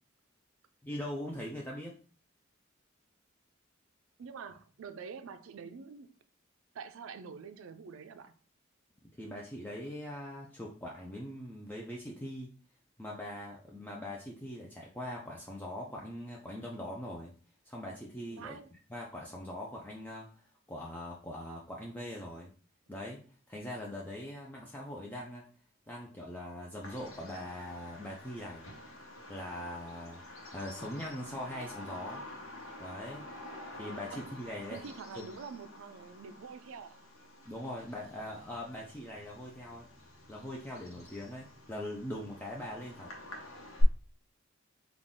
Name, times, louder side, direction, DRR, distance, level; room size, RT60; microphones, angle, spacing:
voice 1, 0.8-2.0 9.1-12.5 13.0-17.3 17.6-18.6 18.9-22.5 22.9-25.5 25.9-28.7 29.3-32.2 32.8-33.2 33.8-34.8 35.2-35.3 37.4-39.9 40.3-43.1, left 1 dB, 10° left, 0.4 m, -42 dB
voice 2, 4.2-6.1 6.7-8.4 18.3-18.7 34.1-34.2 34.7-37.0, right 5 dB, 80° right, 0.4 m, -46 dB
Bird vocalization bird call bird song, 26.8-43.8, left 1 dB, 85° left, 0.9 m, -47 dB
3.8 x 2.3 x 3.5 m
head